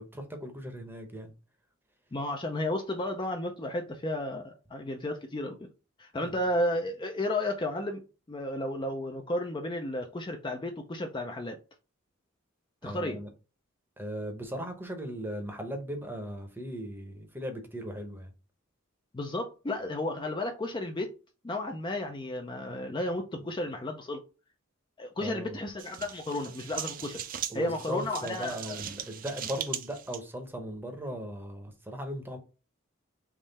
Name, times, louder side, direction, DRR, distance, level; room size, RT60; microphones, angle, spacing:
voice 1, 0.0-1.3 6.2-6.4 12.8-13.3 14.0-18.3 25.2-25.6 27.5-32.4, equal, 10° right, 0.8 m, -38 dB
voice 2, 2.1-5.7 6.0-8.0 8.3-11.6 12.8-13.2 19.1-21.1 21.4-24.2 25.0-27.2 27.5-28.8, left 1 dB, 20° left, 0.5 m, -33 dB
sound 1, 25.8-30.2, right 10 dB, 40° right, 0.4 m, -39 dB
3.7 x 3.1 x 4.0 m
head